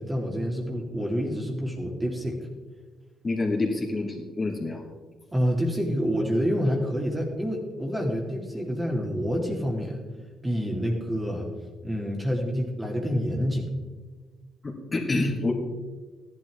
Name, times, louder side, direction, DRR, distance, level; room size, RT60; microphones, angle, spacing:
voice 1, 0.0-2.4 5.3-10.0 10.4-11.5 11.8-13.7, equal, 15° right, 0 dB, 2.3 m, -27 dB
voice 2, 3.2-4.9 14.6-15.5, left 2 dB, 30° left, -1 dB, 2.7 m, -27 dB
14.5 x 11.0 x 3.6 m, 1.4 s
cardioid pair, 90°, 0 cm